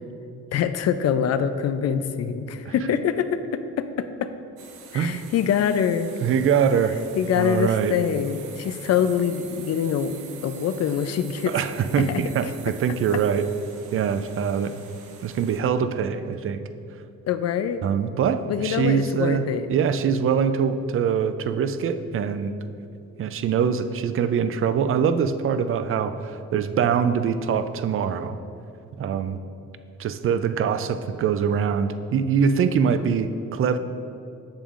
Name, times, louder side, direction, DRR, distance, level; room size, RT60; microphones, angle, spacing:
voice 1, 0.5-4.3 4.9-6.1 7.2-10.2 10.4-11.5 12.0-12.1 17.3-17.8 18.5-19.7, left 8 dB, 55° left, 11 dB, 0.5 m, -24 dB
sound 1, 4.6-15.6, right 7 dB, 85° right, 0.7 m, -45 dB
voice 2, 4.9-5.3 6.2-7.0 7.4-8.0 11.5-13.5 13.9-14.7 15.2-16.6 17.8-19.4 19.7-22.5 23.2-28.4 29.0-29.4 30.0-33.8, right 7 dB, 45° right, 11 dB, 0.4 m, -23 dB
8.8 x 7.0 x 2.5 m, 2.7 s
cardioid pair, 90°, 30 cm